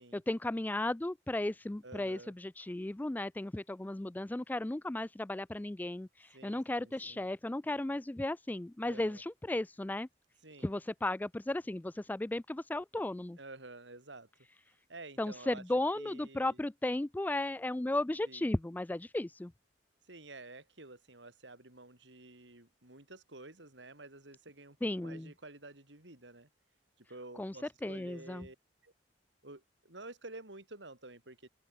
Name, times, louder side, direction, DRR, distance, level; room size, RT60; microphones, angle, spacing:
voice 1, 0.1-10.1 10.6-13.4 15.2-19.5 24.8-25.3 27.4-27.5 27.8-28.4, left 1 dB, 10° left, 0.3 m, -35 dB
voice 2, 1.8-2.3 6.3-7.3 8.8-9.2 10.4-10.8 13.4-14.3 14.9-15.6 15.9-16.6 18.2-18.5 20.1-26.5 27.0-28.6 28.8-28.9 29.4-31.5, right 2 dB, 75° right, 4.8 m, -51 dB
open air
head